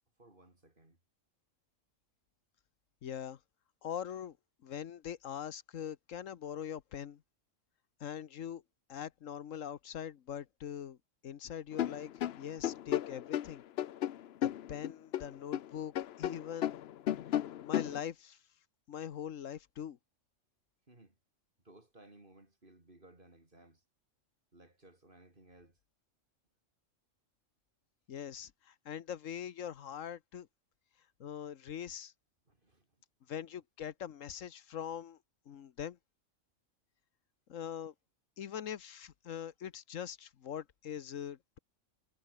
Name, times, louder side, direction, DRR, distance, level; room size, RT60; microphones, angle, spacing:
voice 1, 0.2-1.0 20.9-21.1 21.6-23.8 24.5-25.8 32.5-32.9, right 2 dB, 40° right, 4.4 m, -60 dB
voice 2, 3.0-3.4 3.8-4.4 4.6-7.2 8.0-8.6 8.9-11.0 11.2-12.1 12.4-13.6 14.4-16.8 17.6-18.4 18.9-20.0 28.1-30.5 31.2-32.1 33.3-35.2 35.5-36.0 37.5-37.9 38.4-41.6, left 9 dB, 80° left, 1.3 m, -42 dB
sound 1, 11.7-15.7 15.9-18.0, left 11 dB, 60° left, 0.8 m, -34 dB
omnidirectional pair, 1.3 m